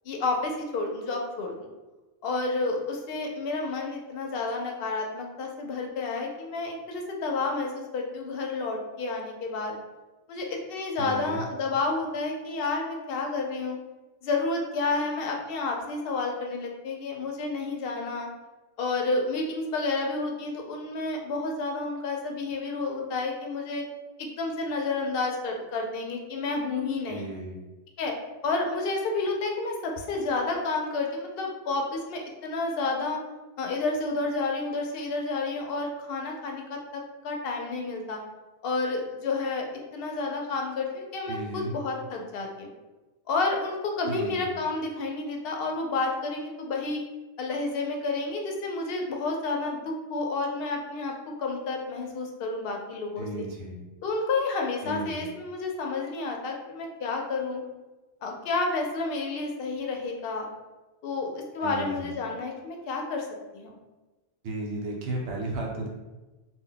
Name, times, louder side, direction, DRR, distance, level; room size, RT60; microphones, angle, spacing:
voice 1, 0.1-1.7 2.2-9.8 10.3-13.8 14.2-18.3 18.8-23.8 24.2-27.3 28.0-28.1 28.4-33.2 33.6-38.2 38.6-39.7 39.9-42.7 43.3-47.0 47.4-53.3 54.0-57.6 58.2-60.5 61.0-63.3 63.5-63.8, left 3 dB, 70° left, 1 dB, 0.7 m, -30 dB
voice 2, 11.0-11.4 27.1-27.5 41.3-41.7 44.1-44.5 53.2-53.8 54.8-55.2 61.6-62.1 64.4-65.9, right 2 dB, 75° right, -1 dB, 0.8 m, -34 dB
2.2 x 2.1 x 3.8 m, 1.1 s
omnidirectional pair, 1.1 m